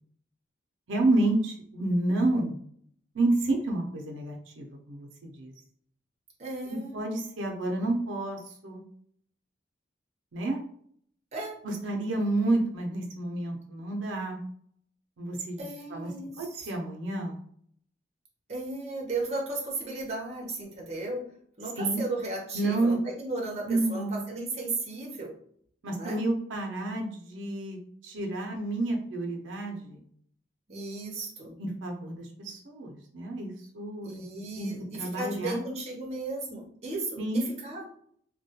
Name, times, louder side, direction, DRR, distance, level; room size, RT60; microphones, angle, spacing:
voice 1, 0.9-2.5 3.1-5.5 6.7-8.8 10.3-10.6 11.6-14.4 15.2-16.1 16.4-17.4 21.8-22.0 22.5-23.0 23.7-24.2 25.8-30.0 31.6-34.2 34.6-34.7 35.0-35.6 37.2-37.5, right 2 dB, 80° right, 2 dB, 0.5 m, -30 dB
voice 2, 6.4-7.1 11.3-11.5 15.6-16.7 18.5-21.3 21.6-25.3 26.0-26.2 30.7-31.6 34.0-37.8, right 2 dB, 35° right, -2 dB, 0.6 m, -35 dB
2.2 x 2.2 x 2.7 m, 0.62 s
head